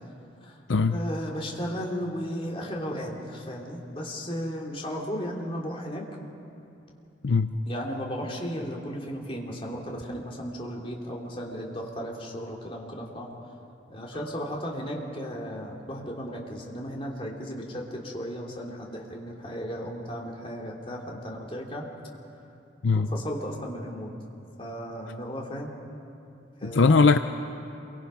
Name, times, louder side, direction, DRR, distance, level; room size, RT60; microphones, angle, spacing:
voice 1, 0.9-6.1 7.7-13.3 13.9-21.8 22.9-24.2 24.6-25.7 26.6-26.9, equal, 30° left, -1 dB, 3.0 m, -35 dB
voice 2, 26.6-27.2, left 4 dB, 75° left, 9 dB, 0.6 m, -20 dB
28.0 x 24.0 x 5.7 m, 2.7 s
head